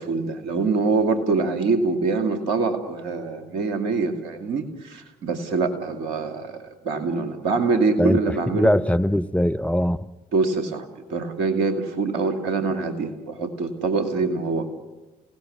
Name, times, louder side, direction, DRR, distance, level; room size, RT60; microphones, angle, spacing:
voice 1, 0.0-8.7 10.3-14.7, right 4 dB, 75° right, 2.5 m, -24 dB
voice 2, 8.0-10.0, left 1 dB, 5° left, 0.9 m, -21 dB
29.5 x 18.0 x 9.5 m
figure-of-eight pair, 45°, 21 cm